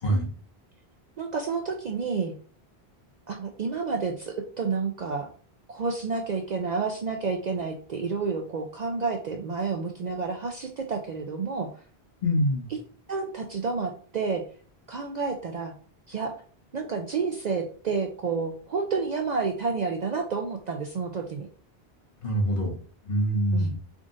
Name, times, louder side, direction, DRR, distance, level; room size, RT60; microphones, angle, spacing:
voice 1, 1.2-2.3 3.3-5.3 5.7-11.8 13.1-14.4 14.9-15.7 16.1-16.3 16.7-21.5 23.5-23.7, right 4 dB, 55° right, 3 dB, 0.5 m, -30 dB
voice 2, 12.2-12.7 22.2-22.7 23.1-23.8, equal, 55° left, 0 dB, 1.3 m, -24 dB
3.6 x 2.4 x 3.8 m, 0.43 s
omnidirectional pair, 1.1 m